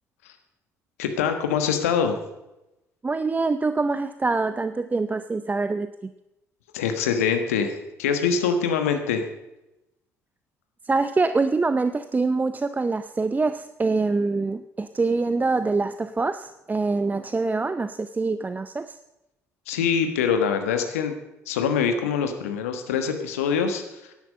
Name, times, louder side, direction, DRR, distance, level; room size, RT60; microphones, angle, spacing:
voice 1, 1.0-2.2 6.7-9.3 19.7-21.1 21.5-24.1, left 6 dB, 75° left, 7 dB, 1.4 m, -24 dB
voice 2, 3.0-6.1 10.8-19.0, right 3 dB, 20° right, 11 dB, 0.6 m, -25 dB
16.0 x 11.0 x 5.3 m, 0.94 s
figure-of-eight pair, 50°, 8 cm